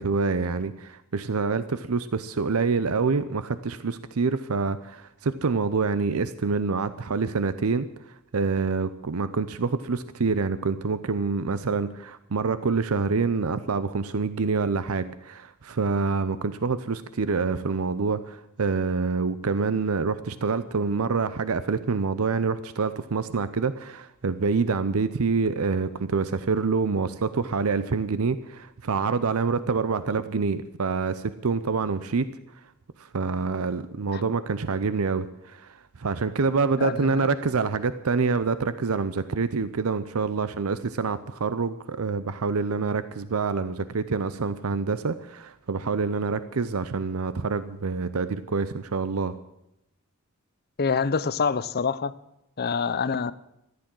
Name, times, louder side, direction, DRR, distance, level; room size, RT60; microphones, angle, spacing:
voice 1, 0.0-7.9 8.3-32.3 33.0-49.4, right 4 dB, 75° right, 0.7 m, -26 dB
voice 2, 36.8-37.3 50.8-52.1 52.6-53.3, left 5 dB, 45° left, 0.6 m, -26 dB
14.0 x 11.5 x 7.6 m
head